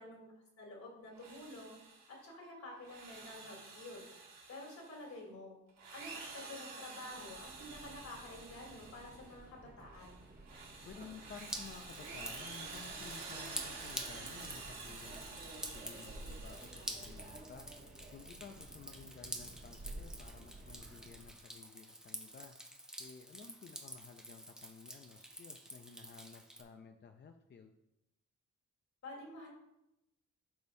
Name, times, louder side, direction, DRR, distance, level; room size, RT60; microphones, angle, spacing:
voice 1, 0.0-1.8 2.1-4.0 4.5-5.6 5.9-10.2 29.0-29.5, left 2 dB, 60° left, -2 dB, 2.8 m, -49 dB
Drill, 1.1-2.2 2.7-5.1 5.7-9.4 9.9-17.3, right 4 dB, 85° right, 2.8 m, -50 dB
Subway metro underground, 7.0-21.4, right 2 dB, 25° right, 1.0 m, -53 dB
voice 2, 10.9-17.7 18.1-22.6 23.0-27.7, left 6 dB, 35° left, 6 dB, 0.4 m, -54 dB
Drip, 11.4-26.6, right 1 dB, ahead, 0.7 m, -48 dB
12.0 x 5.2 x 2.7 m, 0.89 s
wide cardioid pair, 155°, 31 cm